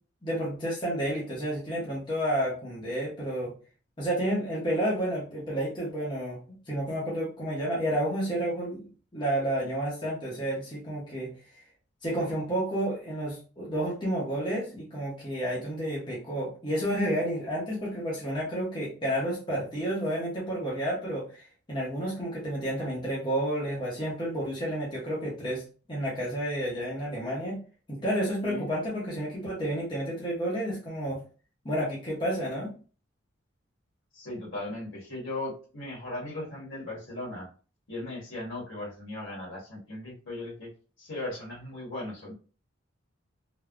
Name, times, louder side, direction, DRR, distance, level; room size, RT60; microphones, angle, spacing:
voice 1, 0.2-3.5 4.0-6.4 6.7-8.8 9.1-11.3 12.0-21.3 21.7-25.6 25.9-27.6 27.9-31.2 31.6-32.7, right 1 dB, 20° left, -6 dB, 0.7 m, -30 dB
voice 2, 34.1-37.5 37.9-40.7 41.0-42.3, left 2 dB, 65° left, -4 dB, 1.4 m, -37 dB
3.3 x 2.0 x 2.4 m, 0.37 s
head